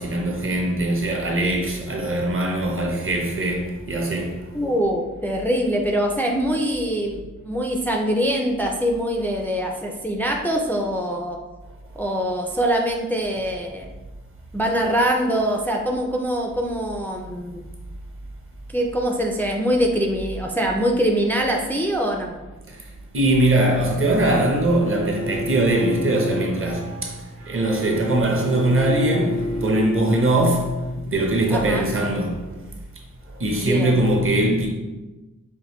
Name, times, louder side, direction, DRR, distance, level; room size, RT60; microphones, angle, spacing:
voice 1, 0.0-4.4 22.7-22.8 23.1-27.2 27.5-30.8 31.1-32.4 33.3-34.7, right 1 dB, 40° right, 0.8 m, -21 dB
voice 2, 4.5-11.4 12.0-13.9 14.5-17.6 18.7-22.4 31.5-31.9 33.6-33.9, equal, 5° left, 0.4 m, -23 dB
Bowed string instrument, 25.0-31.1, equal, 80° right, 1.1 m, -30 dB
5.0 x 2.5 x 3.0 m
wide cardioid pair, 95°, 34 cm